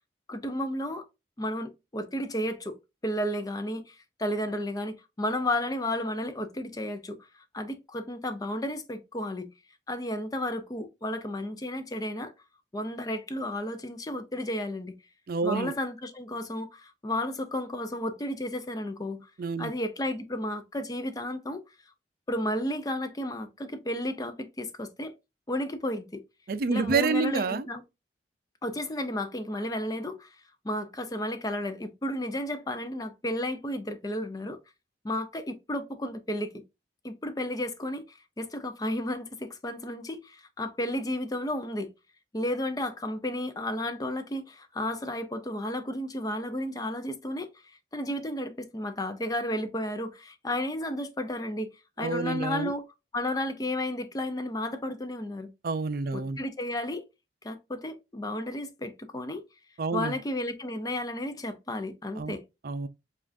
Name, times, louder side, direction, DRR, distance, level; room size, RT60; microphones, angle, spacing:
voice 1, 0.3-1.0 1.4-2.8 3.0-9.5 9.9-12.3 12.7-14.9 15.4-19.3 19.6-21.6 22.3-25.2 25.5-26.2 26.7-27.8 28.6-30.4 30.6-34.6 35.0-36.6 37.0-41.9 42.3-52.8 53.1-55.5 56.1-57.0 57.4-59.4 59.9-62.4, left 1 dB, 20° left, 0.5 m, -33 dB
voice 2, 15.3-15.7 19.4-19.7 26.5-27.7 52.0-52.7 55.6-56.4 59.8-60.2 62.2-62.4 62.6-62.9, right 4 dB, 55° right, 0.4 m, -28 dB
7.1 x 2.5 x 2.5 m
head